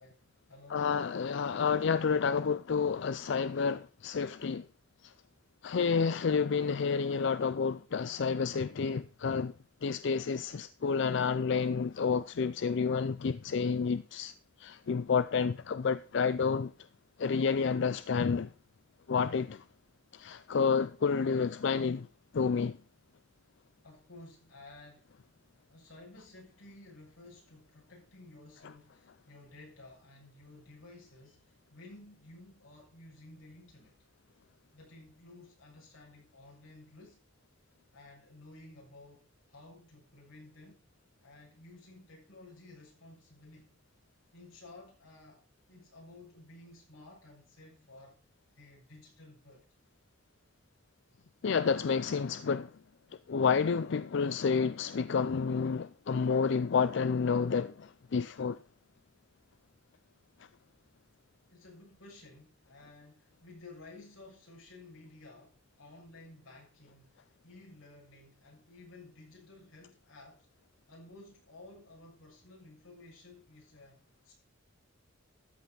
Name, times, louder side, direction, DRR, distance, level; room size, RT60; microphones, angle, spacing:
voice 1, 0.0-0.9 23.8-25.2 25.7-34.0 34.7-37.2 37.9-40.8 41.2-43.8 44.3-48.2 48.5-49.7 61.5-70.5 70.9-74.3, left 2 dB, 90° left, 7.2 m, -54 dB
voice 2, 0.7-4.7 5.0-5.1 5.6-9.5 9.8-14.3 14.6-16.7 17.2-18.5 19.1-19.6 20.1-22.1 22.3-22.8 51.4-52.7 53.3-58.6, left 5 dB, 60° left, 0.4 m, -30 dB
13.5 x 5.8 x 5.9 m
head